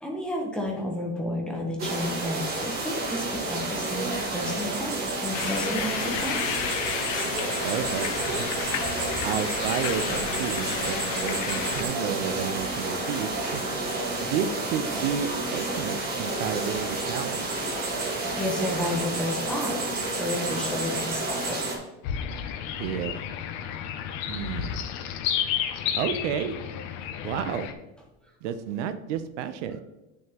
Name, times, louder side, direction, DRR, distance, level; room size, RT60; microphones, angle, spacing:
voice 1, 0.0-4.9 5.2-6.5 18.2-21.6, left 1 dB, ahead, -2 dB, 0.8 m, -32 dB
sound 1, 1.8-21.8, right 2 dB, 25° right, 1.4 m, -30 dB
sound 2, 5.3-11.8, left 10 dB, 80° left, 0.9 m, -33 dB
voice 2, 7.6-8.5 9.2-13.6 14.2-17.5 22.8-23.2 24.3-24.8 26.0-26.5 27.2-27.7 28.4-29.8, right 8 dB, 70° right, 11 dB, 0.7 m, -31 dB
sound 3, 22.0-27.7, left 9 dB, 30° left, 0.4 m, -31 dB
9.0 x 6.4 x 2.9 m, 1.0 s
supercardioid pair, 180°, 37 cm